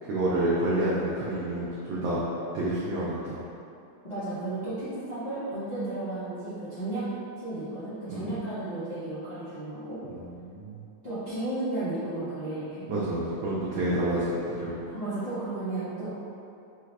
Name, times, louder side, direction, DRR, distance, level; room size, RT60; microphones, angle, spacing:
voice 1, 0.0-2.2 2.5-3.4 8.1-8.3 10.1-10.8 12.9-14.3 14.6-14.9, right 1 dB, 80° right, -8 dB, 1.4 m, -29 dB
voice 2, 4.0-7.0 7.4-10.0 11.0-12.9 14.9-16.1, right 2 dB, 40° left, -16 dB, 0.8 m, -33 dB
5.0 x 2.4 x 3.3 m, 2.6 s
omnidirectional pair, 3.5 m